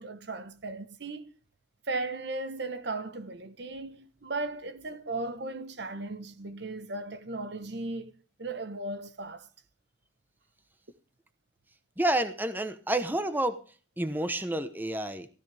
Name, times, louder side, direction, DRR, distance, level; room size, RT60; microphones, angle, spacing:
voice 1, 0.0-1.3 1.9-9.5, right 2 dB, 60° right, 1.2 m, -36 dB
voice 2, 12.0-13.6 14.0-15.3, right 1 dB, 10° right, 1.0 m, -29 dB
15.5 x 14.5 x 3.5 m
head